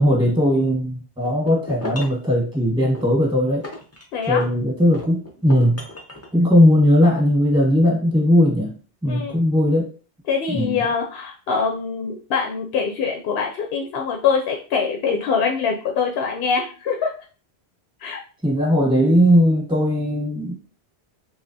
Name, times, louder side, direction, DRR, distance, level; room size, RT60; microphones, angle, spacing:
voice 1, 0.0-3.7 4.2-5.8 6.3-8.7 9.0-9.9 10.5-10.8 18.4-20.5, equal, 5° right, -2 dB, 1.0 m, -18 dB
sound 1, 1.2-2.3 2.9-4.5 4.9-6.3, left 1 dB, 20° left, 0.5 m, -36 dB
voice 2, 4.1-4.5 9.1-9.4 10.3-17.1 18.0-18.2, left 5 dB, 70° left, 2 dB, 0.8 m, -24 dB
3.2 x 3.1 x 2.6 m, 0.37 s
omnidirectional pair, 1.1 m